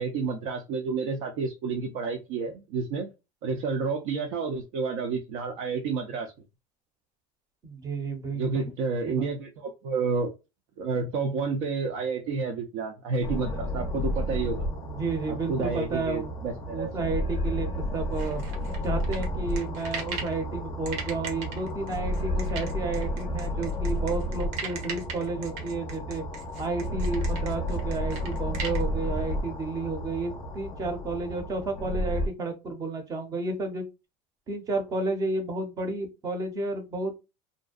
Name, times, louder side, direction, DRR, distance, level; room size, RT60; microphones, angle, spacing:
voice 1, 0.0-3.1 3.4-6.3 8.3-10.3 10.8-14.6 15.3-16.9, right 4 dB, 60° right, 2 dB, 0.5 m, -30 dB
voice 2, 7.6-8.7 9.1-9.3 14.8-16.3 16.7-18.4 18.8-26.2 26.6-33.9 34.5-37.2, right 3 dB, 25° right, 5 dB, 0.7 m, -32 dB
sound 1, 13.2-32.3, equal, 20° left, 0.5 m, -32 dB
sound 2, 18.2-20.4 20.9-28.8, right 5 dB, 80° right, 1.0 m, -38 dB
2.5 x 2.2 x 2.3 m, 0.26 s
cardioid pair, 165°, 15 cm